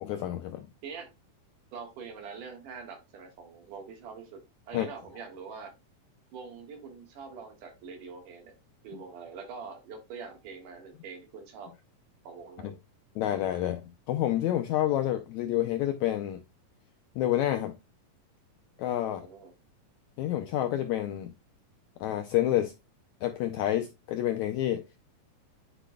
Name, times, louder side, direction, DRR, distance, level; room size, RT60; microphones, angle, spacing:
voice 1, 0.0-0.7 4.7-4.9 12.6-12.7 13.2-13.8 14.1-16.4 17.2-17.7 18.8-19.3 20.2-21.3 22.0-22.7 23.2-24.8, left 12 dB, 90° left, 1.6 m, -28 dB
voice 2, 1.7-4.4 4.7-5.7 6.3-8.5 8.8-11.7 12.2-12.7 19.1-19.5, right 5 dB, 70° right, 2.9 m, -44 dB
10.5 x 5.0 x 2.2 m
omnidirectional pair, 3.9 m